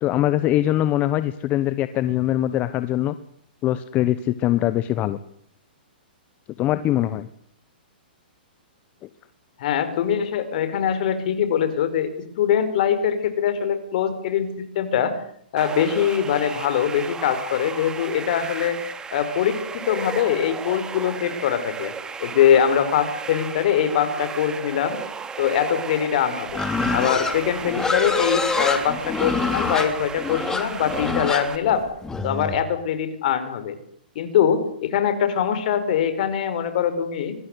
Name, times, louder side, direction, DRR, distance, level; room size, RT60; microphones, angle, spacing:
voice 1, 0.0-3.1 3.6-5.2 6.6-7.3, left 13 dB, 30° left, 13 dB, 1.2 m, -22 dB
voice 2, 9.6-12.1 12.4-15.2 15.5-18.8 19.1-21.9 22.2-25.0 25.4-26.6 26.9-31.9 32.2-33.7 34.1-37.3, left 8 dB, 55° left, 11 dB, 5.1 m, -22 dB
sound 1, 15.6-31.6, right 5 dB, 15° right, 2.7 m, -35 dB
Livestock farm animals working animals, 26.5-32.6, left 4 dB, 10° left, 3.1 m, -26 dB
25.5 x 20.0 x 8.1 m, 0.65 s
hypercardioid pair, 135°, 5 cm